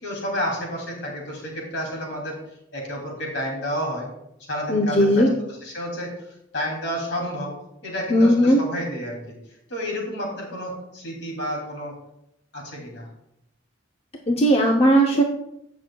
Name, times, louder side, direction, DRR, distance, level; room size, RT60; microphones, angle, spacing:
voice 1, 0.0-2.4 2.7-4.1 4.5-5.3 5.6-6.1 6.5-7.5 7.8-9.3 9.7-12.0 12.5-13.1, equal, 65° left, -1 dB, 2.7 m, -30 dB
voice 2, 4.7-5.3 8.1-8.6 14.3-15.2, equal, 30° left, 1 dB, 0.6 m, -17 dB
15.5 x 6.2 x 2.3 m, 0.81 s
head